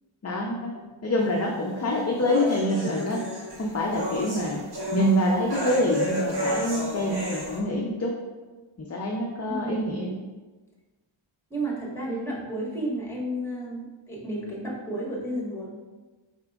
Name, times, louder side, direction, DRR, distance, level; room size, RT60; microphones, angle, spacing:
voice 1, 0.2-0.7 1.0-3.2 3.6-4.6 4.9-8.1 8.8-10.1, left 1 dB, 30° left, -1 dB, 0.5 m, -26 dB
sound 1, 1.2-7.6, equal, 50° right, 1.1 m, -33 dB
voice 2, 9.5-10.2 11.5-15.7, right 1 dB, 5° left, -5 dB, 1.3 m, -32 dB
4.7 x 4.3 x 2.3 m, 1.2 s
wide cardioid pair, 85°, 50 cm